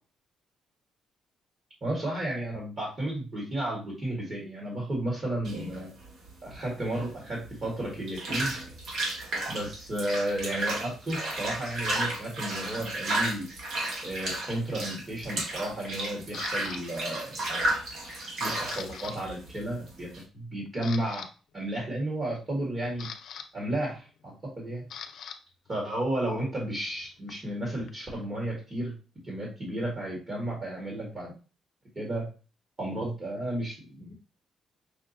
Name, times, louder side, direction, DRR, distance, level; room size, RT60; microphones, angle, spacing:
voice 1, 1.8-5.9 6.4-8.5 9.5-13.5 14.0-17.7 18.4-21.3 21.5-23.1 23.5-24.8 25.7-29.0 29.2-31.3 31.9-32.3 32.8-34.1, right 1 dB, 35° right, -2 dB, 1.6 m, -33 dB
sound 1, 5.4-20.2, right 2 dB, 60° right, 1.7 m, -33 dB
Camera, 16.3-16.8 17.4-17.7 18.1-19.2 19.4-19.6 20.2-20.3 20.7-21.3 22.5-25.4 25.7-28.3, left 7 dB, 70° left, 0.4 m, -44 dB
5.6 x 2.3 x 2.7 m, 0.34 s
cardioid pair, 90°, 0 cm